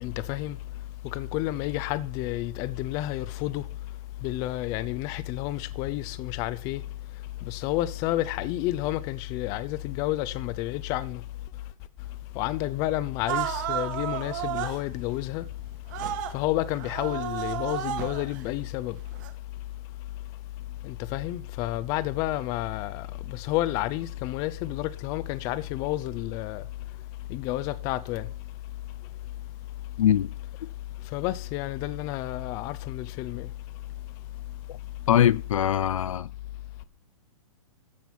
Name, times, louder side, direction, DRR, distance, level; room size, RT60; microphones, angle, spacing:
voice 1, 0.0-0.6 1.1-3.6 4.2-6.8 7.5-11.2 12.4-15.4 16.3-19.0 20.8-26.6 27.3-28.3 31.1-33.5, left 15 dB, 20° left, 0.6 m, -30 dB
sound 1, 13.3-14.8 15.9-16.4 16.7-18.4 19.1-19.3, right 12 dB, 35° right, 1.6 m, -32 dB
voice 2, 30.0-30.3 34.7-34.8 35.1-36.3, left 10 dB, 65° left, 0.6 m, -22 dB
13.5 x 6.2 x 7.1 m
hypercardioid pair, 170°, 18 cm